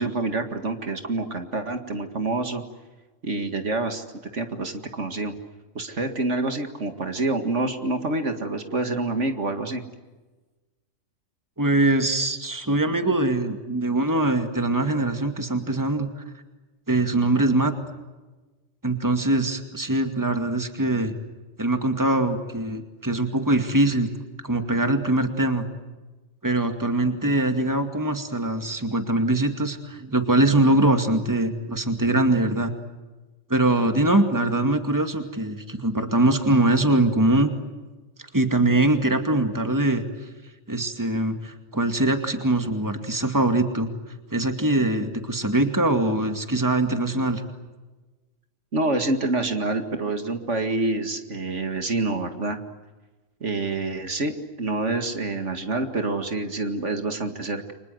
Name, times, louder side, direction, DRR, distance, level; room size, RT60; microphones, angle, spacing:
voice 1, 0.0-2.6 3.2-4.0 4.3-5.3 5.7-9.8 48.7-52.6 53.4-54.3 54.6-57.7, right 2 dB, 65° right, 7 dB, 2.4 m, -27 dB
voice 2, 11.6-16.1 16.9-17.7 18.8-21.1 21.6-24.1 24.4-25.7 26.4-32.7 33.5-37.5 38.3-40.1 40.7-43.9 44.3-47.4, right 2 dB, 15° right, 7 dB, 2.3 m, -22 dB
30.0 x 25.5 x 7.9 m, 1.2 s
omnidirectional pair, 1.3 m